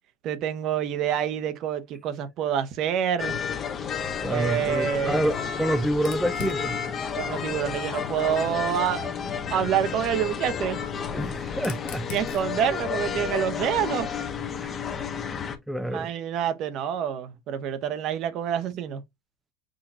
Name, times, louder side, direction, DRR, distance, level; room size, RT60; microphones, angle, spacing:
voice 1, 0.2-3.4 4.3-5.3 7.1-9.1 9.5-10.8 12.1-14.1 15.9-19.0, right 9 dB, 55° right, 0.9 m, -27 dB
sound 1, 3.2-15.6, left 7 dB, 35° left, 0.9 m, -31 dB
voice 2, 4.2-6.8 11.1-12.1 14.6-14.8 15.7-16.1, right 1 dB, ahead, 0.5 m, -28 dB
Fire, 5.9-8.7 9.8-14.1, left 11 dB, 65° left, 0.7 m, -46 dB
6.3 x 2.9 x 2.6 m
hypercardioid pair, 95°, 0 cm